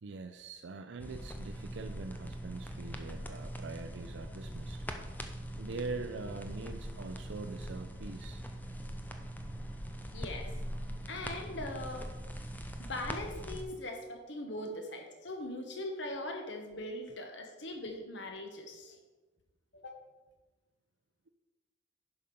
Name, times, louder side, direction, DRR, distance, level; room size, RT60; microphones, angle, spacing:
voice 1, 0.0-5.3 5.6-8.4 13.7-13.8 14.7-14.8, right 3 dB, 75° right, 7 dB, 0.5 m, -43 dB
sound 1, 1.0-13.6, equal, 10° left, 0.6 m, -42 dB
voice 2, 10.1-10.5 11.1-12.1 12.8-19.0 19.7-20.0, left 1 dB, 75° left, 4 dB, 1.3 m, -41 dB
11.0 x 5.1 x 5.4 m, 1.2 s
head